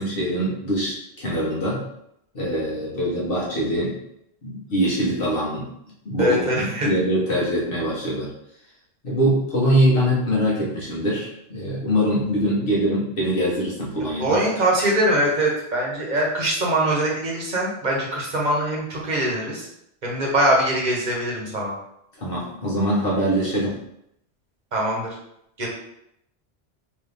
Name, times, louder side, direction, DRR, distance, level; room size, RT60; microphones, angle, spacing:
voice 1, 0.0-1.8 2.3-4.0 4.4-5.7 6.0-8.3 9.0-14.4 22.2-23.8, equal, 55° left, -6 dB, 1.4 m, -23 dB
voice 2, 6.2-6.9 14.2-19.7 20.0-21.7 24.7-25.1 25.6-25.7, right 1 dB, 40° right, -3 dB, 1.1 m, -22 dB
3.9 x 2.8 x 3.4 m, 0.77 s
omnidirectional pair, 1.2 m